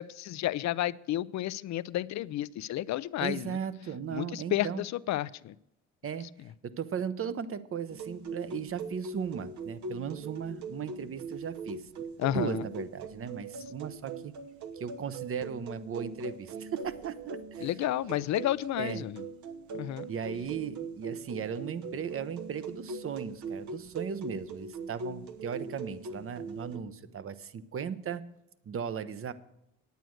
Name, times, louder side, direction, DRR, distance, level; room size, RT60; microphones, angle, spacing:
voice 1, 0.0-3.6 4.1-5.5 12.2-12.6 17.6-19.2 19.7-20.1, left 14 dB, 65° left, 18 dB, 0.5 m, -31 dB
voice 2, 3.2-4.8 6.0-6.3 6.6-14.3 14.8-17.7 18.8-19.1 20.1-28.2 28.7-29.3, right 7 dB, 45° right, 15 dB, 0.8 m, -37 dB
sound 1, 7.9-26.8, right 3 dB, 70° right, 1.1 m, -41 dB
9.2 x 9.2 x 6.3 m, 0.82 s
cardioid pair, 90°, 30 cm